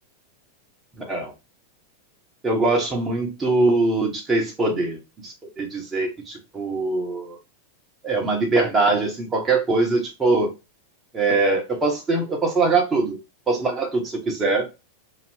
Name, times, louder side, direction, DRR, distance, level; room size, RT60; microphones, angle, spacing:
voice 1, 1.0-1.3 2.4-7.4 8.0-10.5 11.1-13.2 13.5-14.7, right 3 dB, 15° right, 1.1 m, -22 dB
2.7 x 2.4 x 3.4 m
figure-of-eight pair, 90°, 0 cm